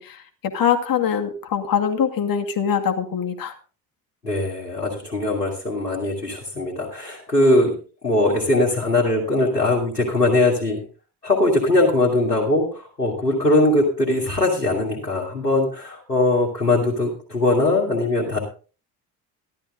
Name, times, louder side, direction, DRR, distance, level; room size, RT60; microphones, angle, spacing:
voice 1, 0.0-3.5, left 8 dB, 45° left, 5 dB, 2.3 m, -23 dB
voice 2, 4.2-7.7 8.0-10.8 11.2-18.4, left 2 dB, 90° left, -3 dB, 2.5 m, -21 dB
14.0 x 12.5 x 3.8 m, 0.36 s
figure-of-eight pair, 50°, 47 cm